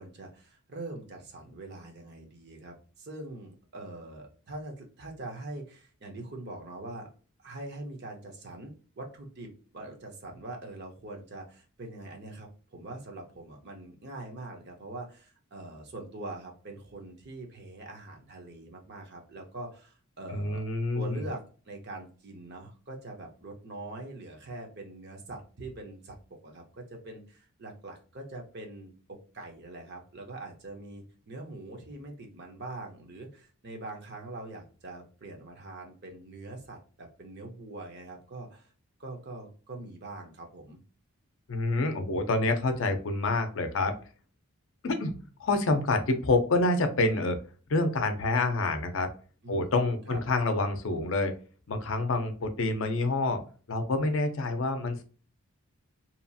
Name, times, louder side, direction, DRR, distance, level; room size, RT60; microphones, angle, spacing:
voice 1, 0.0-7.1 7.4-20.7 20.9-26.2 26.4-38.7 39.0-40.8 49.4-49.7 50.1-50.2, right 2 dB, 50° right, 2 dB, 0.7 m, -43 dB
voice 2, 20.3-21.2 41.5-44.0 44.8-47.4 47.7-49.1 49.5-51.3 51.7-55.0, left 2 dB, 60° left, 7 dB, 0.5 m, -27 dB
2.8 x 2.4 x 2.6 m, 0.38 s
head